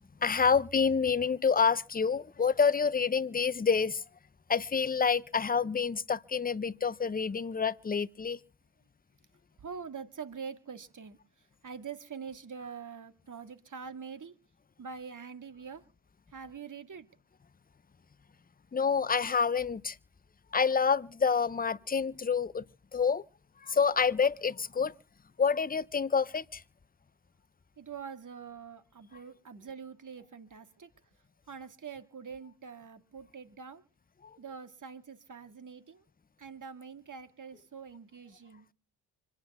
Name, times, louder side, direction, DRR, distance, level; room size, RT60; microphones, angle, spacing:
voice 1, 0.2-4.0 4.5-8.4 18.7-20.0 20.5-22.7 22.9-23.2 23.6-24.9 25.4-26.6 34.2-34.4, left 6 dB, 20° left, 0.7 m, -28 dB
voice 2, 9.6-11.2 11.6-14.4 14.8-15.8 16.3-17.1 27.8-30.9 31.5-33.8 34.4-36.0 36.4-38.7, right 6 dB, 40° right, 2.0 m, -44 dB
26.0 x 9.8 x 3.6 m
supercardioid pair, 60°, 49 cm